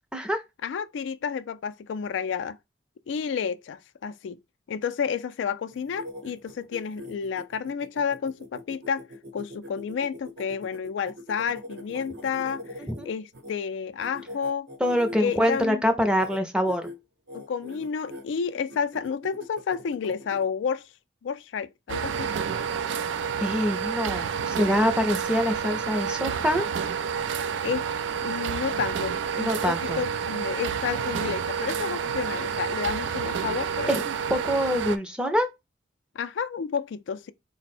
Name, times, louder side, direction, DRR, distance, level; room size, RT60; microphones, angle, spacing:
voice 1, 0.6-2.6 3.1-4.4 4.7-9.1 9.3-14.7 15.2-15.8 17.3-20.9 21.2-22.3 27.6-27.9 28.2-33.9 36.2-37.3, left 6 dB, 85° left, 0.3 m, -30 dB
sound 1, 5.7-13.5 14.0-15.7 16.1-16.4 16.6-16.9 17.3-18.2 18.7-20.4, left 1 dB, 65° right, 0.8 m, -42 dB
voice 2, 14.8-16.9 23.4-26.6 29.4-30.0 33.9-35.5, equal, 5° right, 0.5 m, -25 dB
sound 2, 21.9-35.0, right 7 dB, 85° right, 0.4 m, -29 dB
4.1 x 2.1 x 4.2 m
head